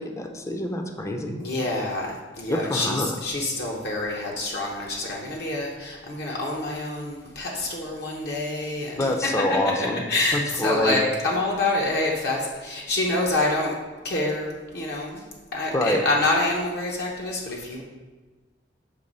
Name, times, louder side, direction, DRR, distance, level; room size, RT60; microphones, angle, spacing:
voice 1, 0.0-1.4 2.5-3.1 9.0-10.0 10.3-11.0 15.7-16.0, left 1 dB, 15° left, 3 dB, 0.5 m, -26 dB
voice 2, 1.4-9.1 9.5-13.7 14.0-15.3 15.5-17.8, left 2 dB, 60° left, -2 dB, 0.9 m, -27 dB
6.6 x 3.1 x 5.3 m, 1.3 s
head